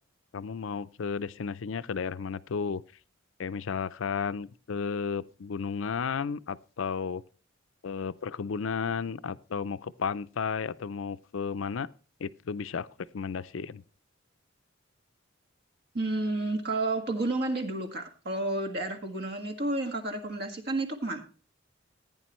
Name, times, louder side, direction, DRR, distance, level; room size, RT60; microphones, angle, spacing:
voice 1, 0.3-2.8 3.4-7.2 7.8-11.9 12.2-12.9 13.1-13.8, left 6 dB, 80° left, 0.5 m, -33 dB
voice 2, 15.9-21.2, right 2 dB, 55° right, 1.8 m, -31 dB
15.5 x 9.3 x 3.1 m
head